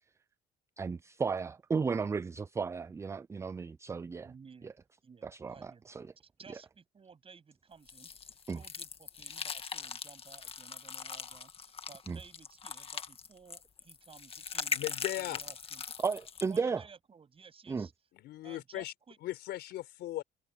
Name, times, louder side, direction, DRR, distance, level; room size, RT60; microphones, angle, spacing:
voice 1, 0.8-4.3 4.6-4.7 5.2-6.1 8.5-8.6 12.1-12.2 16.0-16.8 17.7-17.9, right 5 dB, 15° right, 0.3 m, -34 dB
voice 2, 4.2-4.7 5.0-15.8 16.5-17.9 18.4-19.2, right 5 dB, 35° right, 7.8 m, -56 dB
sound 1, 7.9-16.6, left 6 dB, 35° left, 1.6 m, -41 dB
voice 3, 14.7-15.4 18.1-18.9 19.2-20.2, left 15 dB, 80° left, 4.6 m, -38 dB
cardioid pair, 110°, 17 cm